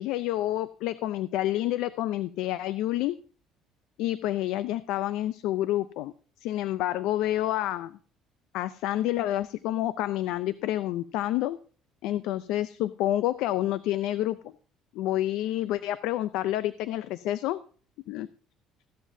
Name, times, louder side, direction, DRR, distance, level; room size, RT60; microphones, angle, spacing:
voice 1, 0.0-3.2 4.0-6.1 6.4-8.0 8.5-11.6 12.0-14.5 14.9-17.6 18.1-18.3, left 14 dB, 80° left, 15 dB, 0.5 m, -28 dB
15.0 x 12.0 x 2.7 m, 0.41 s
supercardioid pair, 95°, 0 cm